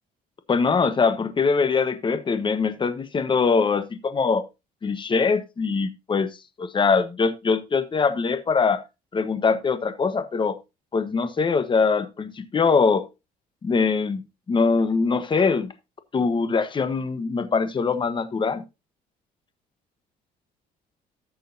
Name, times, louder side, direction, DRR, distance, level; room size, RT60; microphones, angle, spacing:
voice 1, 0.5-4.4 4.8-6.3 6.6-8.8 9.1-10.6 10.9-13.0 13.6-14.2 14.5-15.7 16.1-18.6, left 5 dB, 30° left, 1.2 m, -22 dB
14.0 x 6.4 x 2.7 m
cardioid pair, 110°, 17 cm